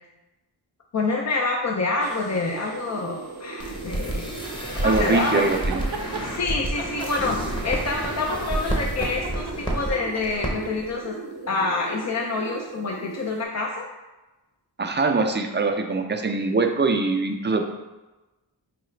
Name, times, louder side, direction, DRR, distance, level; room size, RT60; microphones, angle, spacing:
voice 1, 0.9-4.3 4.7-5.4 6.2-11.2 11.5-13.9, left 3 dB, 40° left, 0 dB, 0.4 m, -27 dB
sound 1, 2.0-13.5, right 4 dB, 50° right, 0.8 m, -39 dB
sound 2, 3.6-9.9 10.2-10.5 10.8-10.9, right 1 dB, 10° left, 0.7 m, -30 dB
voice 2, 4.8-5.8 14.8-17.7, right 3 dB, 25° right, 4 dB, 0.4 m, -23 dB
sound 3, 5.5-6.3 6.8-8.2 8.5-10.7, right 5 dB, 80° right, 0.6 m, -36 dB
4.8 x 2.3 x 3.1 m, 1.1 s
wide cardioid pair, 50°, 47 cm